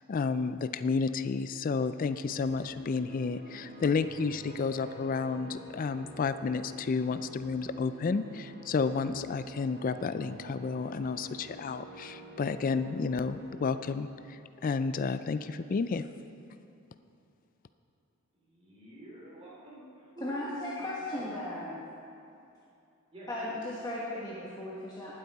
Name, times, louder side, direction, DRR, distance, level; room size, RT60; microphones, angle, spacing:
voice 1, 0.1-16.1, left 4 dB, 40° left, 12 dB, 0.3 m, -31 dB
sound 1, 1.8-13.8, right 1 dB, 45° right, 1.2 m, -50 dB
voice 2, 18.3-20.6 21.1-21.6 23.1-23.5, right 1 dB, 25° right, -5 dB, 2.8 m, -49 dB
voice 3, 20.2-21.9 23.3-25.2, left 1 dB, 20° left, -6 dB, 1.2 m, -36 dB
18.5 x 8.1 x 4.1 m, 2.7 s
head